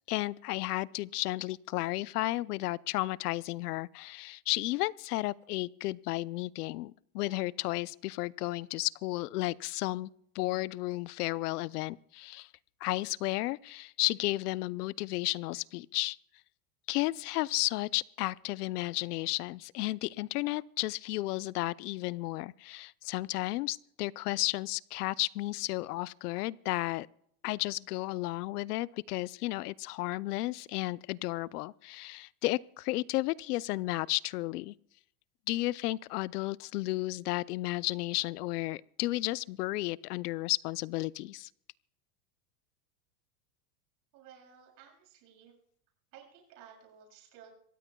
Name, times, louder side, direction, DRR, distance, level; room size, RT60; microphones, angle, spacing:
voice 1, 0.1-10.1 10.3-12.5 12.8-16.2 16.9-27.1 27.4-34.7 35.5-41.5, left 19 dB, 85° left, 20 dB, 0.6 m, -33 dB
voice 2, 44.1-45.5 46.1-47.5, right 8 dB, 45° right, 0 dB, 7.2 m, -55 dB
26.5 x 15.5 x 2.3 m, 0.68 s
supercardioid pair, 170°, 45 cm